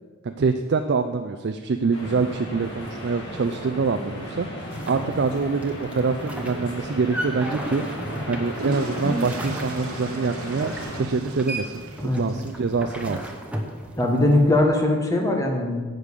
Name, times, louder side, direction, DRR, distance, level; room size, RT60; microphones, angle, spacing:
voice 1, 0.2-4.5 4.9-7.8 8.3-11.8 12.1-13.3, right 4 dB, 50° right, 7 dB, 0.4 m, -25 dB
sound 1, 1.9-11.0, equal, 55° left, 2.4 m, -35 dB
sound 2, 4.7-14.6, right 1 dB, 5° right, 0.9 m, -34 dB
sound 3, 8.4-12.7, right 2 dB, 75° right, 1.0 m, -39 dB
voice 2, 14.0-15.8, left 1 dB, 15° left, 2 dB, 1.2 m, -20 dB
10.0 x 5.2 x 8.2 m, 1.5 s
head